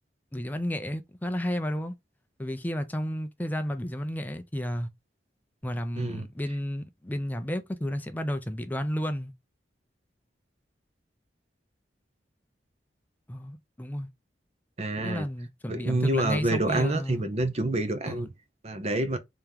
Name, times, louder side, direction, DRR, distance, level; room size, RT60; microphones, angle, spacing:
voice 1, 0.3-2.0 2.4-4.9 5.6-9.3 13.3-14.1 15.0-17.2 18.1-18.3, equal, 10° left, 0.4 m, -32 dB
voice 2, 6.0-6.3 14.8-15.3 15.7-18.3 18.6-19.2, right 2 dB, 35° right, 0.6 m, -27 dB
3.4 x 2.9 x 3.4 m
head